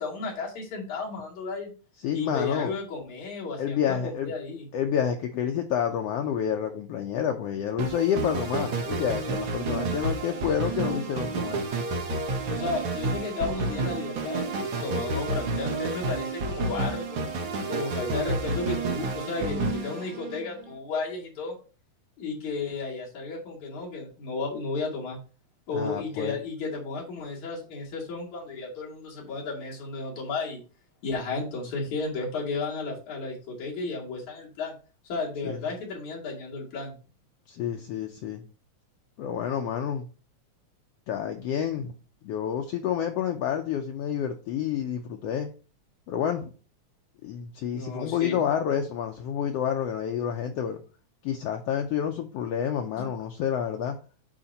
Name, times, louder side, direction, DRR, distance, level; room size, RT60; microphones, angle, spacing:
voice 1, 0.0-1.7 2.1-4.7 12.5-17.3 17.7-21.6 22.2-25.2 25.7-30.6 31.0-34.7 35.0-36.9 47.7-48.5 53.0-53.1, left 3 dB, 70° left, 3.5 m, -33 dB
voice 2, 2.0-2.7 3.6-4.3 4.7-11.6 25.7-26.4 35.4-35.6 37.5-38.4 39.2-40.1 41.1-41.9 42.2-45.5 46.1-46.5 47.2-50.8 51.2-54.0, left 8 dB, 90° left, 1.3 m, -29 dB
sound 1, 7.8-20.7, right 3 dB, 60° right, 1.5 m, -30 dB
8.5 x 2.9 x 5.3 m
omnidirectional pair, 3.6 m